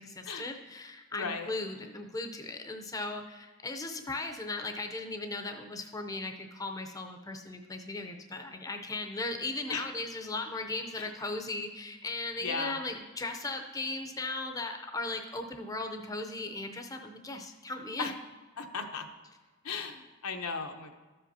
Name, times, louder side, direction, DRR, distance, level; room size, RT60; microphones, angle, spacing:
voice 1, 0.0-18.1, left 2 dB, 15° left, 4 dB, 0.5 m, -37 dB
voice 2, 1.1-1.5 9.7-9.9 11.0-11.1 12.4-12.8 18.0-18.1 18.6-19.1 19.6-20.9, left 5 dB, 90° left, 5 dB, 0.8 m, -36 dB
13.5 x 7.6 x 2.7 m, 1.3 s
head